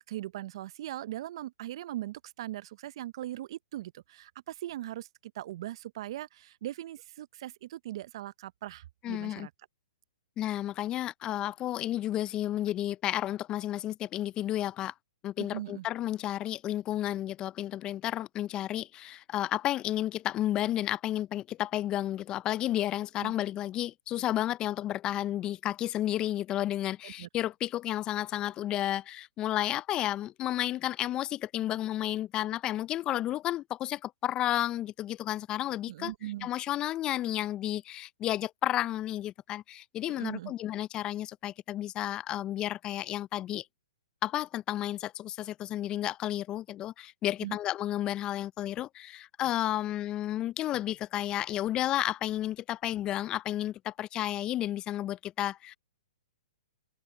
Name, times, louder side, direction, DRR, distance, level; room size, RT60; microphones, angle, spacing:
voice 1, 0.1-9.5 15.4-15.9 23.2-23.3 27.0-27.3 35.9-36.5 40.1-40.5 47.4-47.6, right 14 dB, 55° right, 0.6 m, -40 dB
voice 2, 9.0-9.5 10.4-14.9 15.2-36.1 36.4-43.6 44.2-55.8, left 13 dB, 25° left, 0.5 m, -32 dB
hypercardioid pair, 130°, 3 cm